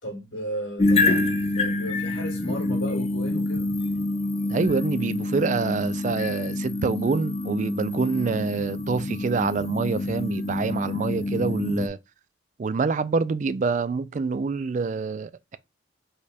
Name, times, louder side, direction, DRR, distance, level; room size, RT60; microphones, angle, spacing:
voice 1, 0.0-3.8, equal, 80° left, 2.6 m, -34 dB
sound 1, 0.8-11.9, left 2 dB, 30° left, 0.4 m, -27 dB
voice 2, 4.5-12.0 12.6-15.6, right 4 dB, 40° right, 0.3 m, -26 dB
4.9 x 2.3 x 4.2 m
head